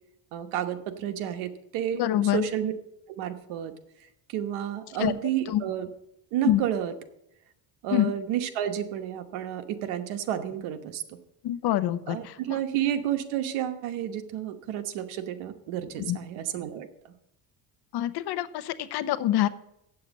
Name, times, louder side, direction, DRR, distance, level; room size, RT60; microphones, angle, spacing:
voice 1, 0.3-2.0 2.3-2.7 3.1-3.7 4.3-5.9 6.3-6.9 7.8-11.2 12.1-17.1, right 10 dB, 85° right, 8 dB, 1.2 m, -31 dB
voice 2, 1.9-2.5 5.0-5.1 5.5-5.6 6.4-6.6 7.9-8.1 11.4-12.6 16.0-16.2 17.9-19.5, left 13 dB, 55° left, 14 dB, 0.8 m, -26 dB
8.0 x 7.6 x 7.3 m, 0.80 s
cardioid pair, 120°, 47 cm